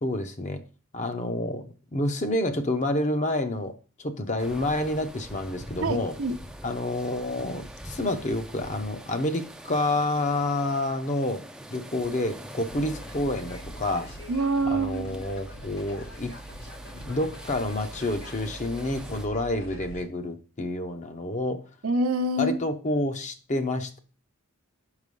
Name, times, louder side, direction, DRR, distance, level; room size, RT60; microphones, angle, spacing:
voice 1, 0.0-0.6 0.9-3.7 4.0-6.2 6.6-11.4 11.7-14.1 14.7-16.3 17.0-21.6 22.4-24.0, left 1 dB, 35° left, 8 dB, 0.7 m, -28 dB
sound 1, 4.4-19.3, equal, 5° right, 0.4 m, -45 dB
voice 2, 5.8-6.4 14.3-15.2 21.8-22.6, right 2 dB, 80° right, 5 dB, 0.8 m, -26 dB
sound 2, 12.7-20.0, equal, 85° left, 3.1 m, -42 dB
6.0 x 4.9 x 5.3 m, 0.36 s
head